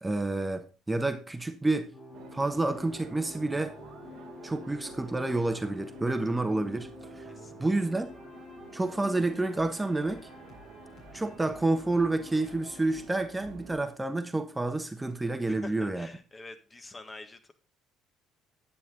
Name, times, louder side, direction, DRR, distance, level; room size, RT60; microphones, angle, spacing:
voice 1, 0.0-1.9 2.3-3.8 4.4-7.3 7.6-8.1 8.7-10.3 11.1-16.1, right 2 dB, 15° right, 1.1 m, -29 dB
sound 1, 1.9-13.0, left 1 dB, 60° left, 4.4 m, -48 dB
sound 2, 2.1-13.9, right 7 dB, 60° right, 1.3 m, -51 dB
voice 2, 15.5-17.5, left 2 dB, 25° left, 1.5 m, -46 dB
10.5 x 8.5 x 3.8 m
hypercardioid pair, 50°, 0 cm